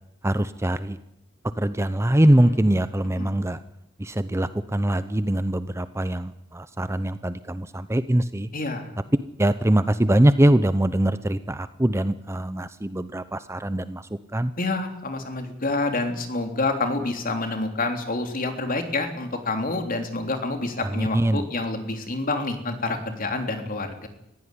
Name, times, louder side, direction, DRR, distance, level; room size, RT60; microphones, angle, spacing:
voice 1, 0.2-1.0 1.6-3.6 4.0-8.5 9.4-14.0 14.3-14.5 20.9-21.4, right 1 dB, 15° right, 12 dB, 0.7 m, -22 dB
voice 2, 8.5-8.9 14.6-24.1, left 2 dB, 45° left, 6 dB, 3.2 m, -28 dB
21.0 x 16.0 x 10.0 m, 0.82 s
head